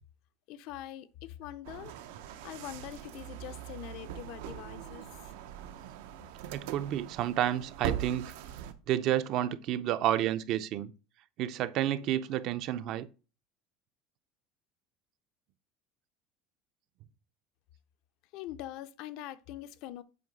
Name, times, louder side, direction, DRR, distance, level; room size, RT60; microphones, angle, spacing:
voice 1, 0.5-1.9 2.3-5.3 18.3-20.0, left 13 dB, 55° left, 0.5 m, -43 dB
sound 1, 1.6-8.7, right 10 dB, 90° right, 0.7 m, -41 dB
voice 2, 6.5-8.3 8.9-10.9 11.4-13.1, right 12 dB, 45° right, 0.4 m, -30 dB
7.7 x 3.0 x 5.2 m
cardioid pair, 165°, 0 cm